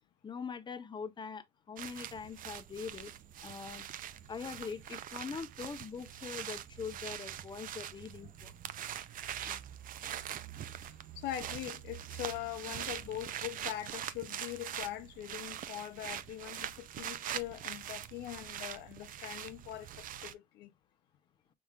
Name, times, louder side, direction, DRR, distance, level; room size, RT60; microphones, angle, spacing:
voice 1, 0.2-3.1 3.4-3.8 4.3-8.5 9.4-9.6, left 5 dB, 25° left, 0.8 m, -43 dB
sound 1, 1.8-20.3, right 10 dB, 55° right, 0.6 m, -43 dB
voice 2, 10.8-20.7, left 13 dB, 80° left, 0.6 m, -42 dB
6.0 x 3.6 x 2.3 m
cardioid pair, 110°, 17 cm